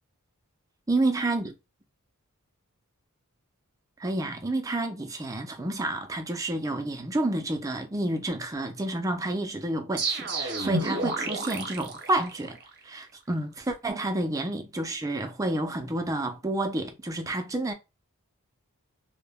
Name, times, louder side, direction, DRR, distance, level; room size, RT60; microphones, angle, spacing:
voice 1, 0.9-1.5 4.0-12.6 12.8-17.7, right 2 dB, 15° right, 0.4 m, -29 dB
sound 1, 10.0-12.7, right 3 dB, 50° right, 0.7 m, -31 dB
2.1 x 2.1 x 3.4 m
head